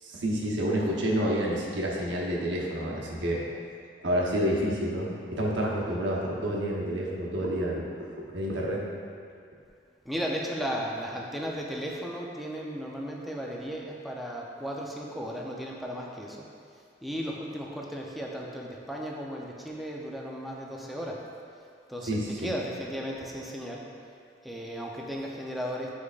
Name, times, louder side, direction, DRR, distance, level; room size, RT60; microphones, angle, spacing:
voice 1, 0.0-3.4 4.0-8.9 22.0-22.6, equal, 85° right, -3 dB, 1.0 m, -29 dB
voice 2, 10.1-16.4 17.0-21.2 21.9-22.1 22.4-23.8 24.5-25.9, equal, ahead, -2 dB, 0.6 m, -35 dB
8.8 x 4.8 x 2.4 m, 2.3 s
head